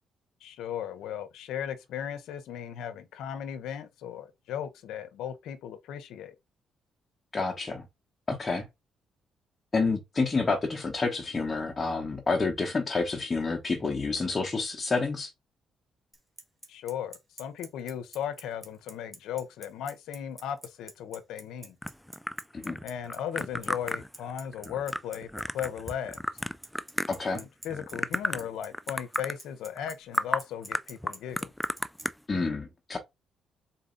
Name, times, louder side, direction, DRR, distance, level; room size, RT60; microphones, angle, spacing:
voice 1, 0.4-6.3 16.7-17.1 17.4-21.8 22.8-25.3 25.5-26.2 27.3-31.5, left 9 dB, 85° left, 0.7 m, -36 dB
voice 2, 7.3-7.8 8.3-8.7 9.7-15.3 22.5-22.8 27.1-27.4 32.3-33.0, left 3 dB, 30° left, 0.9 m, -29 dB
Bicycle, 16.1-32.0, right 1 dB, 10° right, 1.7 m, -45 dB
sound 1, 21.8-27.4 27.7-28.5 28.7-29.4 29.8-29.9 30.1-30.4 30.7-32.1, left 1 dB, 5° left, 0.3 m, -32 dB
4.1 x 2.7 x 3.7 m
cardioid pair, 90°, 0 cm